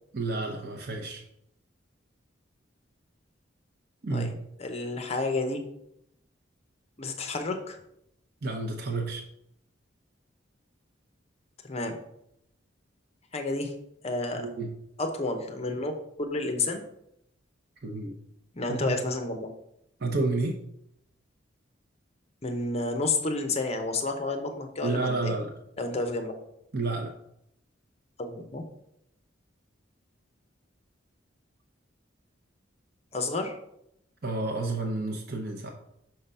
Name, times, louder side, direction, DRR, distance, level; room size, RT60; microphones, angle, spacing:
voice 1, 0.1-1.2 4.0-4.3 8.4-9.2 14.4-14.7 17.8-18.2 18.7-18.9 20.0-20.6 24.8-25.5 26.7-27.1 34.2-35.7, right 2 dB, 55° right, 2 dB, 0.8 m, -30 dB
voice 2, 4.6-5.6 7.0-7.8 11.6-12.0 13.3-13.7 14.0-14.5 15.0-15.9 16.2-16.8 18.5-19.5 22.4-25.3 25.8-26.3 28.2-28.6 33.1-33.6, left 2 dB, 35° left, 6 dB, 0.8 m, -30 dB
6.0 x 3.8 x 5.5 m, 0.77 s
head